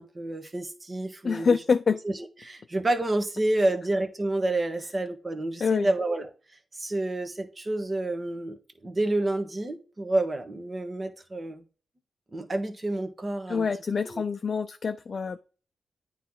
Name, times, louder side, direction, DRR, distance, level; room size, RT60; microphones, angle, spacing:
voice 1, 0.0-1.5 2.0-2.1 2.4-6.3 6.7-11.6 12.3-13.7 14.0-14.2, right 2 dB, 35° right, 1.4 m, -29 dB
voice 2, 1.2-2.0 5.6-5.9 13.5-15.4, left 5 dB, 55° left, 0.5 m, -26 dB
9.2 x 3.3 x 3.9 m
supercardioid pair, 50°, 0 cm